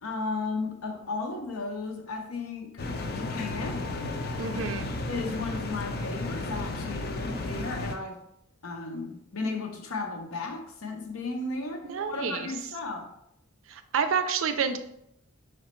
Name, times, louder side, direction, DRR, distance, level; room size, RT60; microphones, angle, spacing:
voice 1, 0.0-2.8 3.1-3.9 5.1-8.2 8.6-13.1, left 3 dB, 85° left, 0.7 m, -34 dB
sound 1, 2.8-8.0, left 2 dB, 45° left, 0.4 m, -33 dB
voice 2, 4.4-4.9 11.8-12.5 13.7-14.8, right 6 dB, 65° right, 0.4 m, -29 dB
4.9 x 3.1 x 3.0 m
head